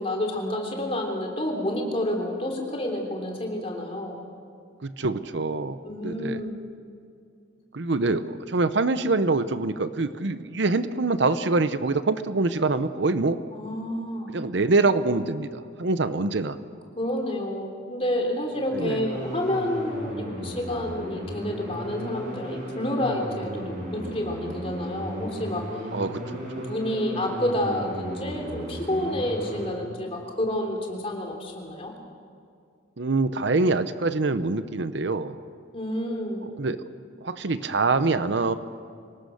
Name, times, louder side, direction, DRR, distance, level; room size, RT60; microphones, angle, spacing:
voice 1, 0.0-4.2 5.8-6.6 13.5-14.3 16.9-25.6 26.3-31.9 35.7-36.4, left 1 dB, 30° left, 1 dB, 3.3 m, -29 dB
voice 2, 4.8-5.8 6.0-6.4 7.7-13.4 14.3-16.6 18.7-19.0 25.9-26.7 33.0-35.3 36.6-36.8 37.2-38.5, right 3 dB, 65° right, 12 dB, 0.8 m, -25 dB
sound 1, 18.3-29.7, equal, 45° right, 7.2 m, -35 dB
26.0 x 18.5 x 6.6 m, 2.3 s
head